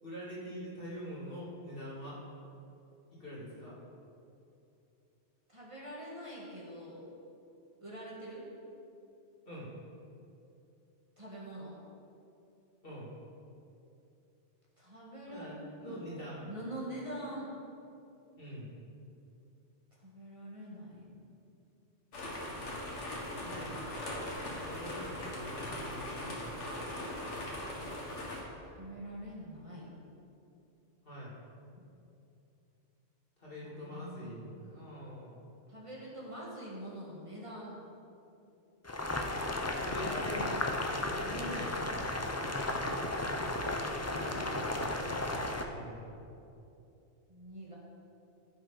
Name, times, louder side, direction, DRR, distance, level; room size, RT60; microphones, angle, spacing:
voice 1, 0.0-2.2 3.1-3.8 9.5-9.7 12.8-13.1 15.3-16.5 18.4-18.7 23.4-26.9 31.0-31.4 33.4-35.4 39.6-40.7 41.0-42.8 45.7-46.1, equal, 50° left, -7 dB, 2.8 m, -44 dB
voice 2, 5.5-7.0 7.8-8.4 11.2-11.8 14.8-16.1 16.4-17.5 19.9-21.3 28.7-29.9 33.6-34.4 35.7-37.8 43.6-44.7 47.3-47.8, right 1 dB, 30° right, -6 dB, 1.7 m, -45 dB
sound 1, 22.1-28.4, left 1 dB, 85° left, 1.9 m, -40 dB
Boiling, 38.8-45.6, left 2 dB, 20° left, 0.4 m, -34 dB
14.5 x 6.2 x 4.0 m, 2.7 s
omnidirectional pair, 1.2 m